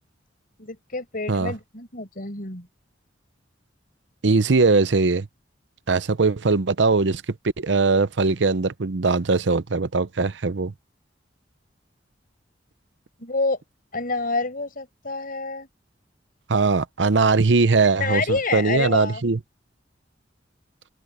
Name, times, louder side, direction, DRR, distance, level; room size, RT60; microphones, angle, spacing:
voice 1, 0.6-2.7 13.2-13.6 13.9-15.7 18.0-19.2, left 3 dB, 50° left, 5.3 m, -28 dB
voice 2, 4.2-5.3 5.9-7.2 7.6-10.7 16.5-19.4, right 3 dB, 70° right, 0.7 m, -20 dB
open air
head